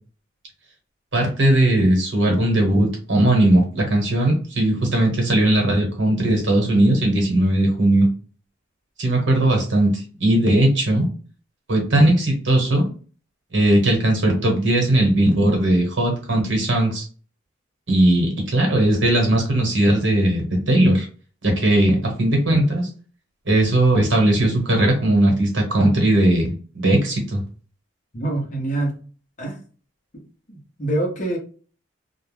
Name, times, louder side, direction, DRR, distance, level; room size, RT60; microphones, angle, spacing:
voice 1, 1.1-8.1 9.0-11.1 11.7-12.9 13.5-17.0 17.9-21.1 21.4-22.9 23.5-27.4, right 1 dB, 65° right, 1 dB, 1.0 m, -18 dB
voice 2, 28.1-29.0 29.4-29.6 30.1-30.2 30.5-31.4, right 2 dB, 40° left, 1 dB, 0.8 m, -25 dB
2.3 x 2.2 x 3.2 m, 0.39 s
head